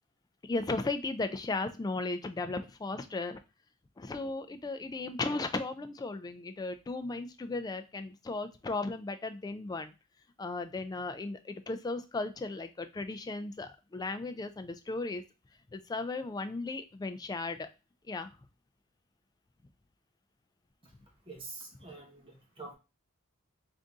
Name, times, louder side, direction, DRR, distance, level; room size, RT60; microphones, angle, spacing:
voice 1, 0.4-3.4 4.0-9.9 10.4-15.2 15.7-17.7 18.1-18.3, left 3 dB, 20° left, 8 dB, 0.3 m, -36 dB
voice 2, 21.3-22.7, right 3 dB, 25° right, -1 dB, 1.1 m, -46 dB
3.7 x 2.6 x 3.5 m, 0.29 s
head